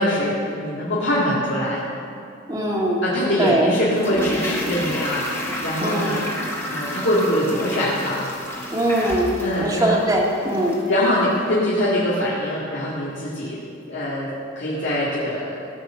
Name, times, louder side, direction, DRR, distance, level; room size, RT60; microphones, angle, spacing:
voice 1, 0.0-1.8 3.0-5.2 5.6-6.3 6.7-8.3 9.4-10.0 10.9-13.6 13.9-15.6, equal, 65° left, -9 dB, 2.1 m, -23 dB
voice 2, 2.5-3.0 3.4-3.7 5.8-6.1 8.7-9.3 9.6-10.8, right 1 dB, 20° right, -2 dB, 1.9 m, -21 dB
Toilet flush, 3.9-11.0 11.2-11.3, left 1 dB, 10° left, 1.7 m, -31 dB
16.5 x 6.2 x 7.5 m, 2.5 s
head